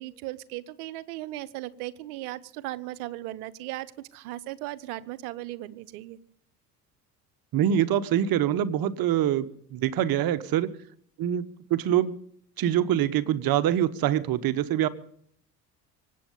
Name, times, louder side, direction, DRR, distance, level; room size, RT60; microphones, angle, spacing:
voice 1, 0.0-6.2, right 16 dB, 70° right, 16 dB, 1.0 m, -37 dB
voice 2, 7.5-10.7 11.2-12.2 12.6-14.9, right 11 dB, 50° right, 15 dB, 1.2 m, -25 dB
25.0 x 8.6 x 5.3 m, 0.63 s
hypercardioid pair, 60°, 46 cm